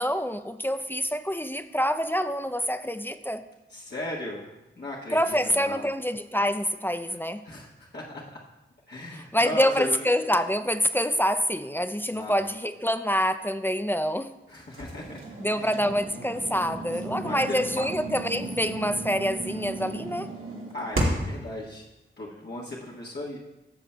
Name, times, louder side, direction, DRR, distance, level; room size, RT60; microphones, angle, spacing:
voice 1, 0.0-3.4 5.1-7.4 9.3-14.3 15.4-20.3, equal, 10° left, 10 dB, 0.4 m, -26 dB
voice 2, 3.7-4.5 4.8-5.9 7.4-8.2 8.9-10.0 12.1-12.4 14.5-15.2 15.5-15.8 17.1-17.8 20.7-21.9 22.2-23.4, left 1 dB, 55° left, -6 dB, 1.3 m, -36 dB
sound 1, 14.7-21.4, right 1 dB, 75° right, 1.8 m, -34 dB
13.0 x 7.0 x 2.2 m, 1.0 s
cardioid pair, 50°, 21 cm